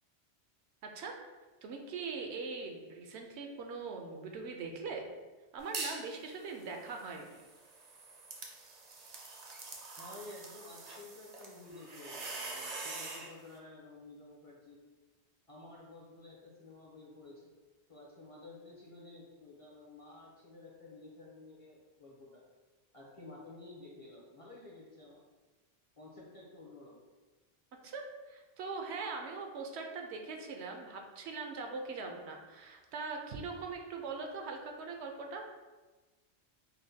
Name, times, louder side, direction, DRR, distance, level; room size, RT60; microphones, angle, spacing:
voice 1, 0.8-1.2 1.6-5.1 5.5-7.4 27.8-35.4, right 4 dB, 75° right, 3 dB, 0.8 m, -41 dB
sound 1, 5.7-6.1 6.5-13.3, right 3 dB, 50° right, 0.5 m, -44 dB
voice 2, 10.0-14.8 15.5-17.5 17.9-22.4 22.9-25.2 26.0-27.0, left 2 dB, 40° left, -4 dB, 0.6 m, -52 dB
5.5 x 2.2 x 2.7 m, 1.3 s
omnidirectional pair, 1.1 m